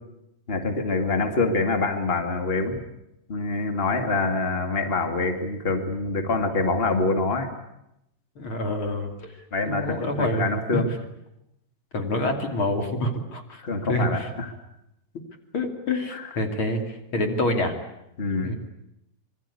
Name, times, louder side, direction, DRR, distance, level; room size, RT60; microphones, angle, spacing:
voice 1, 0.5-2.8 3.3-7.5 9.5-10.9 13.6-14.5 16.1-16.3 18.2-18.5, left 3 dB, 65° left, 6 dB, 0.5 m, -25 dB
voice 2, 8.4-9.1 9.6-10.8 11.9-14.3 15.5-17.7 18.4-18.6, left 1 dB, 35° left, 5 dB, 3.0 m, -27 dB
26.0 x 23.0 x 8.5 m, 0.83 s
omnidirectional pair, 5.1 m